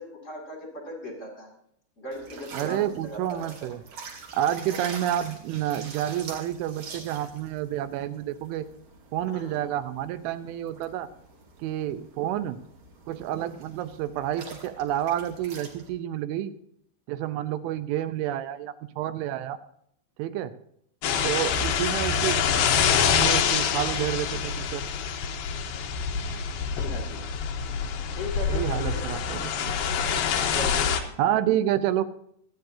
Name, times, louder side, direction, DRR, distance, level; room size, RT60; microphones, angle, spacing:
voice 1, 0.0-1.5 2.0-3.7 9.3-9.7 21.1-21.6 26.7-27.3 28.1-29.2 30.5-30.9, left 1 dB, 25° left, 1 dB, 1.6 m, -38 dB
sound 1, 2.1-15.9, right 5 dB, 50° right, 2.7 m, -45 dB
voice 2, 2.5-3.8 4.3-8.7 9.1-11.1 11.6-12.6 13.1-16.6 17.1-19.6 20.2-20.5 21.2-22.4 23.2-24.8 28.5-29.8 31.2-32.0, right 12 dB, 85° right, 12 dB, 3.1 m, -29 dB
sound 2, 21.0-31.0, left 7 dB, 70° left, 2.4 m, -26 dB
26.5 x 9.3 x 2.7 m, 0.69 s
omnidirectional pair, 5.5 m